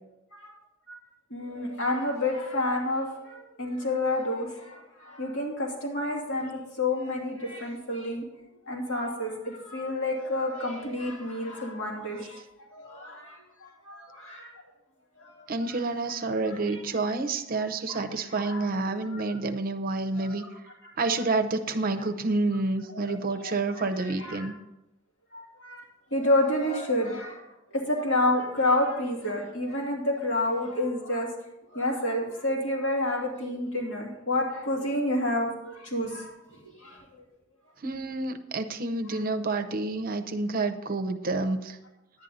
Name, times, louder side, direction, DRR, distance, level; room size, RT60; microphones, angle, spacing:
voice 1, 1.3-8.2 8.7-12.4 12.7-14.5 15.2-15.5 16.4-16.8 17.9-18.0 18.3-18.7 19.1-19.2 20.2-20.4 23.0-23.2 23.4-24.5 25.3-25.8 26.1-27.4 27.7-31.3 31.7-36.3 36.8-37.0, left 1 dB, 80° left, -2 dB, 2.8 m, -29 dB
voice 2, 15.5-20.4 21.0-24.5 37.8-41.8, right 3 dB, 50° right, 8 dB, 0.7 m, -29 dB
10.5 x 9.1 x 4.1 m, 0.91 s
head